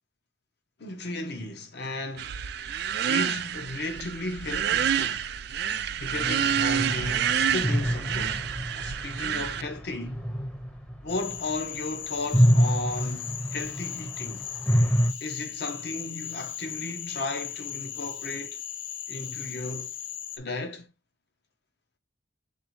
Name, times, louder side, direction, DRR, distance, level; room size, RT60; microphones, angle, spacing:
voice 1, 0.8-2.4 3.1-5.2 6.0-8.4 8.8-10.2 11.0-14.5 15.2-18.6 19.1-19.9 20.4-20.9, left 2 dB, 60° left, 0.9 m, -35 dB
sound 1, 2.2-9.6, right 8 dB, 55° right, 0.3 m, -28 dB
sound 2, 6.2-11.8 12.2-15.1, equal, 5° left, 0.7 m, -27 dB
Cricket / Frog, 11.1-20.4, left 10 dB, 75° left, 0.5 m, -37 dB
4.2 x 3.1 x 3.0 m
head